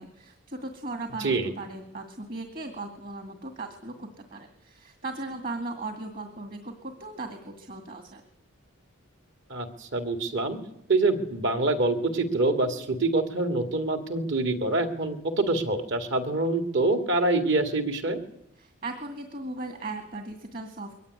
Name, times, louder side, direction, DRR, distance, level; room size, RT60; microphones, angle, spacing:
voice 1, 0.0-8.2 18.6-21.0, right 2 dB, 40° right, 6 dB, 2.2 m, -37 dB
voice 2, 1.2-1.5 9.5-10.6 10.9-18.2, right 2 dB, 55° right, 7 dB, 2.5 m, -25 dB
22.5 x 16.5 x 9.8 m, 0.79 s
head